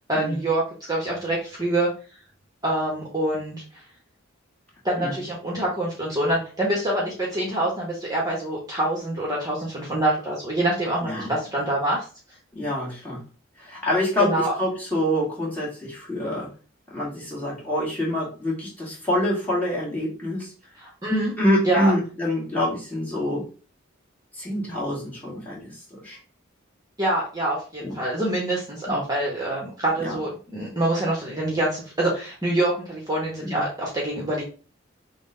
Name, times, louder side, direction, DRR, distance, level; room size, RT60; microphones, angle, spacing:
voice 1, 0.1-0.6 0.9-1.9 2.6-3.6 4.8-12.0 14.3-14.5 20.8-21.4 21.6-21.9 27.0-34.4, right 1 dB, 20° right, -3 dB, 1.1 m, -25 dB
voice 2, 11.0-11.3 12.5-13.2 13.6-16.5 16.9-20.5 21.4-23.5 24.3-26.2 27.8-28.0 28.9-29.0 30.0-30.2 33.4-33.6, left 1 dB, 10° left, -6 dB, 1.8 m, -26 dB
6.1 x 2.3 x 3.8 m, 0.36 s
head